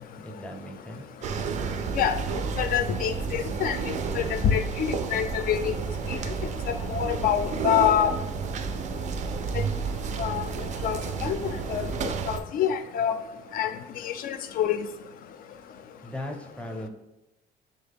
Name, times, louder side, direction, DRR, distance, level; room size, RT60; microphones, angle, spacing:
voice 1, 0.2-1.0 16.0-16.9, left 1 dB, 5° left, 3 dB, 0.6 m, -37 dB
sound 1, 1.2-12.4, right 5 dB, 45° right, 0.4 m, -31 dB
voice 2, 2.6-3.8 4.1-5.7 6.9-8.1 10.2-10.4 10.8-11.9 12.3-13.2 13.5-13.7 14.0-14.8, left 9 dB, 55° left, 9 dB, 0.4 m, -26 dB
6.3 x 2.2 x 3.4 m, 0.98 s
cardioid pair, 110°, 17 cm